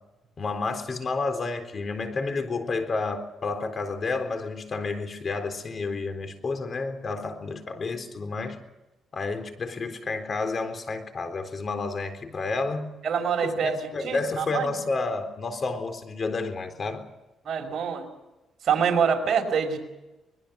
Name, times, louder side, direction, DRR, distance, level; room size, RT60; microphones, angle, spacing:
voice 1, 0.4-8.6 9.1-12.9 13.4-17.1, left 3 dB, 40° left, 3.9 m, -30 dB
voice 2, 13.0-13.8 14.0-14.7 17.5-18.1 18.6-19.8, right 6 dB, 60° right, 5.1 m, -25 dB
25.0 x 21.5 x 6.4 m
cardioid pair, 90°, 0 cm